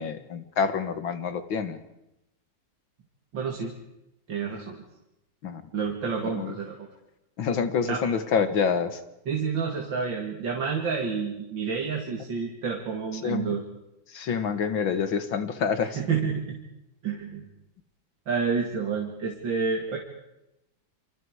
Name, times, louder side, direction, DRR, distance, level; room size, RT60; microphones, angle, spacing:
voice 1, 0.0-1.8 5.4-5.6 6.3-6.5 7.4-9.0 13.2-13.6 14.1-16.0, left 6 dB, 85° left, 10 dB, 2.4 m, -27 dB
voice 2, 3.3-3.7 4.3-4.8 5.7-6.8 7.8-8.0 9.3-13.6 15.9-16.6 17.0-17.5 18.3-20.0, right 5 dB, 70° right, 1 dB, 3.0 m, -29 dB
28.5 x 26.0 x 4.9 m, 0.88 s
omnidirectional pair, 2.1 m